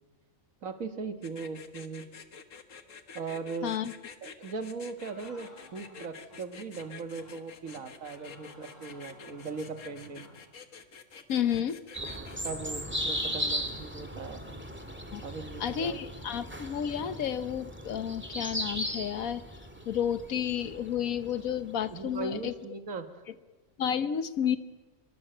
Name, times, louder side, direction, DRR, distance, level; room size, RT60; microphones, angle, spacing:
voice 1, 0.6-2.1 3.1-3.7 4.2-10.3 12.4-14.4 15.2-16.0 21.9-23.2, right 4 dB, 75° right, 8 dB, 2.0 m, -39 dB
sound 1, 1.2-12.5, left 5 dB, 65° left, 1.7 m, -48 dB
voice 2, 3.6-3.9 11.3-11.8 15.1-15.2 15.6-19.4 19.9-22.5 23.8-24.6, left 9 dB, 85° left, 13 dB, 1.4 m, -31 dB
sound 2, 5.0-6.4 6.7-6.9 7.2-7.4 7.7-10.4, equal, 30° left, 5.3 m, -55 dB
sound 3, 11.9-22.2, equal, 10° right, 2.4 m, -37 dB
25.0 x 23.5 x 7.8 m, 1.2 s
omnidirectional pair, 1.4 m